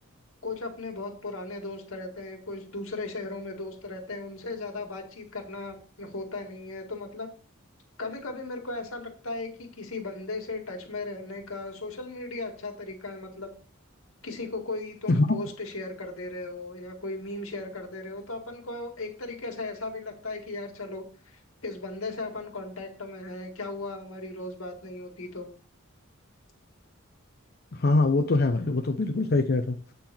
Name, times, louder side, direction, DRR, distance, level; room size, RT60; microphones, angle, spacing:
voice 1, 0.4-7.3 8.0-13.5 14.2-25.5, left 2 dB, 85° left, 3 dB, 1.9 m, -37 dB
voice 2, 27.8-29.8, left 2 dB, 50° left, 4 dB, 0.6 m, -23 dB
8.6 x 3.9 x 6.0 m, 0.41 s
head